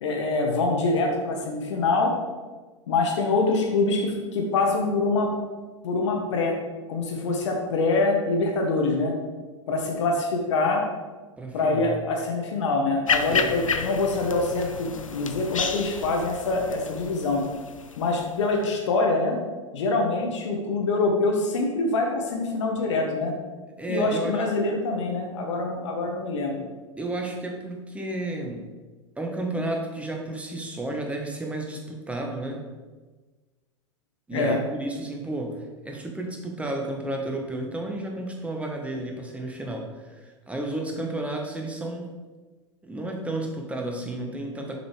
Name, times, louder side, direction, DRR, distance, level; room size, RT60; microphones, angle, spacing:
voice 1, 0.0-2.1 2.9-5.3 5.8-6.6 6.9-9.1 9.7-10.8 11.5-17.4 18.0-19.4 19.7-23.3 23.9-26.7 34.3-34.6, left 3 dB, 65° left, 2 dB, 1.1 m, -25 dB
voice 2, 11.4-12.0 13.3-13.6 23.8-24.5 27.0-28.6 29.2-32.6 34.3-42.1 42.8-44.8, right 2 dB, 10° right, 1 dB, 1.0 m, -32 dB
sound 1, 13.1-18.7, left 6 dB, 85° left, 0.4 m, -31 dB
6.7 x 5.2 x 3.2 m, 1.3 s
figure-of-eight pair, 90°, 16 cm